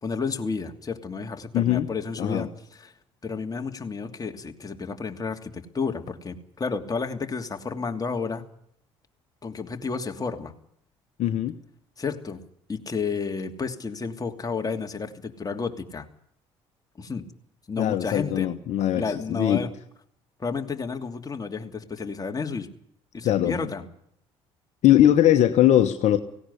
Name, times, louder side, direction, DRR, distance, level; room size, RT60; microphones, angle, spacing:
voice 1, 0.0-2.9 3.2-8.5 9.4-10.5 12.0-12.4 12.7-16.0 17.0-17.2 17.7-18.5 18.9-19.7 20.4-22.7 23.1-23.9, left 5 dB, 25° left, 5 dB, 2.9 m, -31 dB
voice 2, 1.5-1.9 2.2-2.5 11.2-11.6 17.8-19.7 23.2-23.6 24.8-26.2, left 12 dB, 60° left, 7 dB, 1.4 m, -20 dB
17.5 x 17.5 x 9.9 m, 0.69 s
hypercardioid pair, 65°, 13 cm